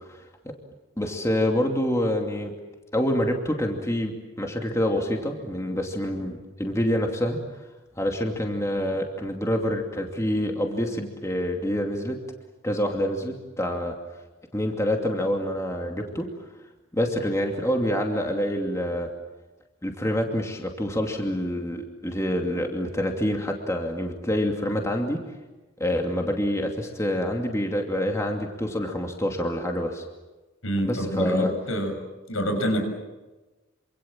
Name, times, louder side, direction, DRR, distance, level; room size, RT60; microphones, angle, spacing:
voice 1, 1.0-2.5 2.9-7.4 8.0-12.2 12.6-13.9 14.5-16.3 16.9-19.1 19.8-25.2 25.8-30.0 30.8-31.5, equal, 15° left, 2 dB, 2.6 m, -26 dB
voice 2, 30.6-32.0 32.3-32.9, equal, 85° left, 5 dB, 6.8 m, -26 dB
27.0 x 26.0 x 7.5 m, 1.1 s
head